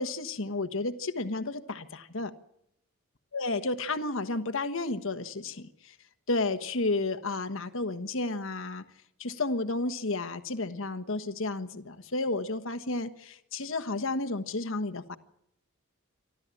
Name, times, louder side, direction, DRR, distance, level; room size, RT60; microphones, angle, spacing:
voice 1, 0.0-2.3 3.3-5.9 6.3-8.8 9.2-15.2, left 2 dB, 65° left, 10 dB, 1.4 m, -32 dB
28.5 x 13.0 x 9.8 m, 0.81 s
head